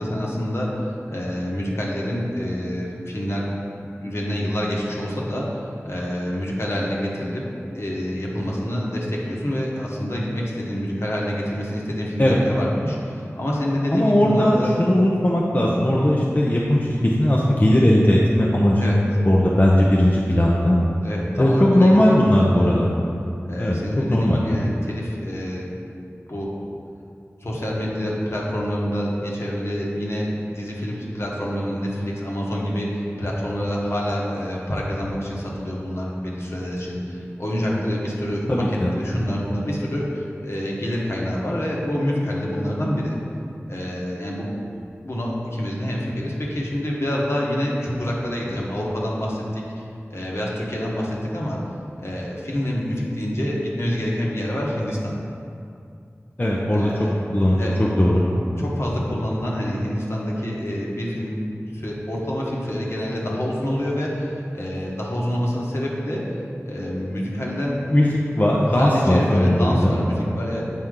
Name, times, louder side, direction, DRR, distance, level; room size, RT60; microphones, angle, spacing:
voice 1, 0.0-3.5 3.8-7.5 7.7-14.7 18.8-19.0 21.0-22.7 23.4-25.7 26.3-26.5 27.4-43.2 43.7-44.5 45.0-51.6 52.0-55.2 56.7-57.2 57.6-57.8 58.6-61.4 61.7-66.4 66.6-67.9 68.7-70.6, equal, 55° left, -4 dB, 1.2 m, -27 dB
voice 2, 14.0-19.0 19.2-20.8 21.4-22.9 23.6-24.4 38.5-38.9 56.4-56.9 57.3-58.2 67.9-69.9, left 1 dB, 35° left, -4 dB, 0.6 m, -18 dB
7.8 x 4.3 x 3.7 m, 2.5 s
wide cardioid pair, 50°, 5 cm